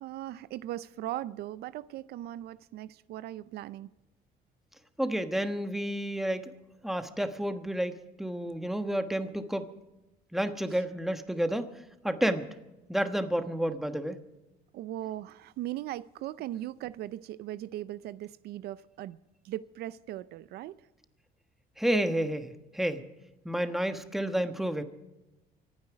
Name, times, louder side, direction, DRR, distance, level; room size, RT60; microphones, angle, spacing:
voice 1, 0.0-3.9 14.7-19.2 19.4-20.8, right 13 dB, 70° right, 0.5 m, -38 dB
voice 2, 5.0-6.5 6.8-9.7 10.3-11.7 12.0-12.5 12.9-14.2 21.8-23.0 23.4-24.8, right 1 dB, ahead, 1.2 m, -30 dB
25.0 x 9.6 x 5.0 m
cardioid pair, 110°, 17 cm